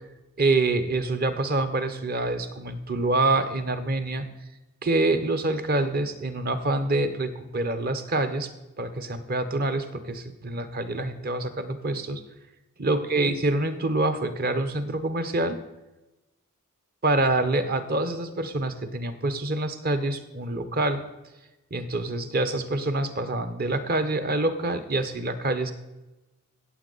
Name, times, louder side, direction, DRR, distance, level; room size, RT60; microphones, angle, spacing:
voice 1, 0.4-4.2 4.8-8.5 8.8-12.2 12.8-15.6 17.0-21.0 21.7-25.7, right 2 dB, 45° right, 10 dB, 0.9 m, -26 dB
15.5 x 7.4 x 4.0 m, 1.0 s
head